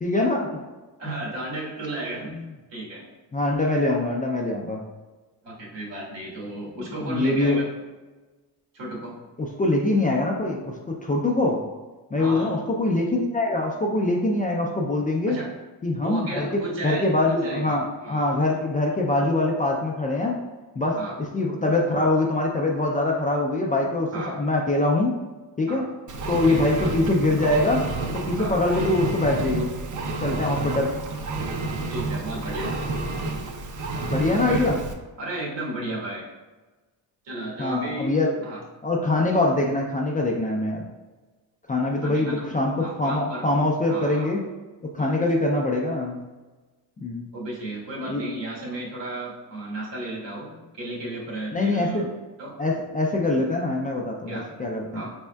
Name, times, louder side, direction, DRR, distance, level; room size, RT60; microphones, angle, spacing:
voice 1, 0.0-0.5 3.3-4.8 7.0-7.6 9.4-11.6 12.1-15.4 15.8-16.5 16.8-20.4 20.8-25.1 25.6-25.8 26.3-27.8 28.1-29.7 30.2-30.9 33.9-34.8 37.6-38.3 38.8-40.9 41.7-44.4 44.8-46.2 47.0-47.3 48.1-48.2 51.5-52.1 52.6-55.1, left 2 dB, 20° left, -1 dB, 0.3 m, -23 dB
voice 2, 1.0-2.3 2.7-3.0 5.4-7.7 8.7-9.2 12.1-12.6 15.2-15.5 16.0-18.4 21.0-21.1 24.1-24.4 25.7-25.9 26.5-26.7 28.4-28.6 31.9-32.8 34.5-34.7 35.2-36.3 37.2-38.1 38.4-38.6 42.0-43.4 43.9-44.3 45.0-45.2 47.3-52.1 52.4-52.5 54.3-54.5 54.9-55.1, right 1 dB, 75° right, -4 dB, 1.4 m, -34 dB
Engine, 26.1-34.9, right 3 dB, 45° right, 0.5 m, -30 dB
4.2 x 3.5 x 2.2 m, 1.2 s
cardioid pair, 110°, 44 cm